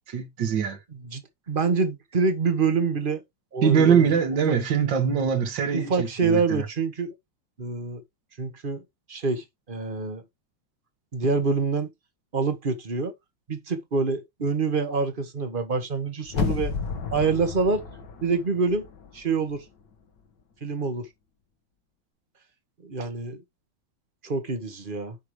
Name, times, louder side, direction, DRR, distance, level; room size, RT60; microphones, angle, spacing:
voice 1, 0.1-0.8 3.6-6.6, right 7 dB, 60° right, 2.2 m, -23 dB
voice 2, 0.9-1.2 1.5-3.2 3.5-4.1 4.5-4.6 5.7-7.1 7.6-8.0 8.4-8.8 9.1-10.2 11.1-11.9 12.3-13.1 13.5-16.8 17.1-17.8 18.2-18.9 19.1-19.6 20.6-21.1 22.8-23.4 24.2-25.2, right 4 dB, 30° right, 1.2 m, -26 dB
sound 1, 16.3-19.2 19.5-19.6, left 5 dB, 60° left, 1.9 m, -31 dB
8.2 x 5.8 x 3.2 m
omnidirectional pair, 2.3 m